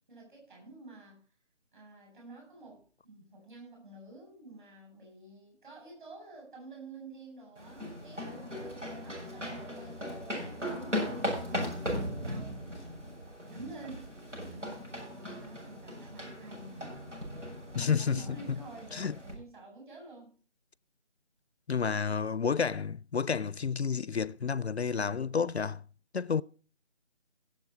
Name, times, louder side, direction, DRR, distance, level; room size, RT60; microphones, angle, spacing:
voice 1, 0.1-1.2 1.7-12.6 13.5-17.0 17.7-20.3, right 3 dB, 45° right, 8.0 m, -50 dB
sound 1, 7.6-19.3, equal, 85° right, 7.6 m, -38 dB
voice 2, 17.8-18.2 18.5-18.6 18.9-19.1 21.7-25.8 26.1-26.4, left 6 dB, 65° left, 0.5 m, -30 dB
17.5 x 7.6 x 4.5 m
figure-of-eight pair, 160°, 35 cm